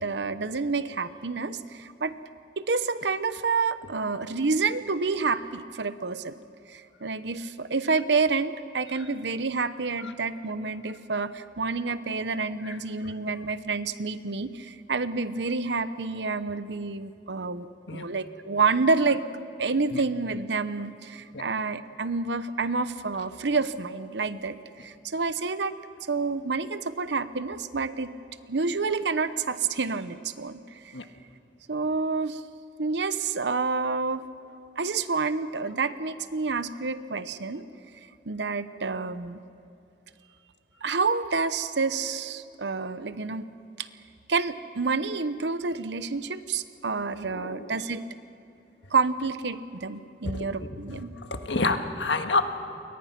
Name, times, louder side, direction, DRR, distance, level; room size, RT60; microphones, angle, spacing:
voice 1, 0.0-2.1 2.6-6.4 6.7-19.2 19.6-25.8 26.1-28.1 28.5-31.0 31.7-32.4 32.8-34.2 34.8-37.6 38.3-39.4 40.8-43.4 43.8-43.9 44.3-48.0 48.9-51.1, right 4 dB, 70° right, 13 dB, 0.9 m, -28 dB
voice 2, 47.3-47.8 50.2-52.4, left 3 dB, 80° left, 6 dB, 1.6 m, -29 dB
28.5 x 23.0 x 6.0 m, 2.6 s
head